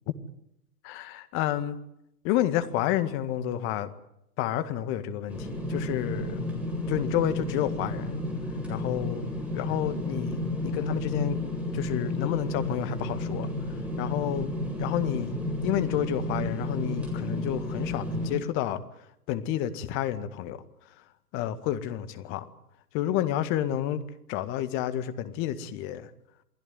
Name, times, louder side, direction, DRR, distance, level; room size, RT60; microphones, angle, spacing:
voice 1, 0.8-1.8 2.2-3.9 4.4-6.4 6.9-8.2 8.7-11.4 11.7-13.5 14.0-14.5 14.8-18.8 19.3-20.6 21.3-22.5 22.9-24.0 24.3-26.1, left 11 dB, 25° left, 11 dB, 1.9 m, -30 dB
sound 1, 5.3-18.4, left 1 dB, 5° right, 7.9 m, -32 dB
28.5 x 19.5 x 9.5 m, 0.81 s
figure-of-eight pair, 115°, 46 cm